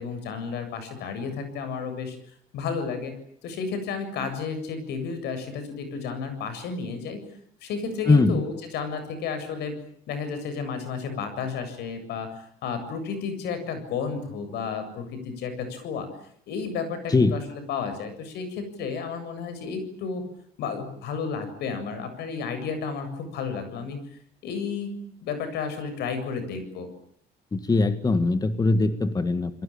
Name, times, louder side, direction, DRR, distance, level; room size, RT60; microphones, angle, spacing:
voice 1, 0.0-2.2 2.5-3.2 3.4-7.2 7.6-9.7 10.1-16.1 16.5-17.4 17.7-20.2 20.6-24.0 24.4-24.9 25.2-26.9, left 5 dB, 80° left, 10 dB, 7.7 m, -32 dB
voice 2, 8.1-8.4 17.1-17.4 27.5-29.5, left 3 dB, 20° left, 10 dB, 1.9 m, -21 dB
29.5 x 22.0 x 8.8 m, 0.67 s
cardioid pair, 110°, 17 cm